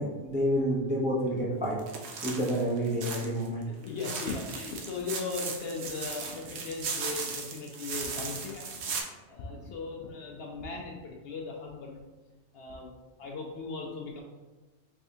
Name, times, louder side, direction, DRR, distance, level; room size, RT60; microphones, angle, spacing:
voice 1, 0.0-1.8 2.2-3.6, equal, 10° right, -5 dB, 0.5 m, -29 dB
sound 1, 1.8-3.5 3.8-9.0, right 5 dB, 70° right, 0.9 m, -37 dB
voice 2, 3.8-12.0 12.5-12.9 13.2-14.2, left 4 dB, 65° left, 0 dB, 0.7 m, -38 dB
3.4 x 3.4 x 2.7 m, 1.2 s
omnidirectional pair, 1.2 m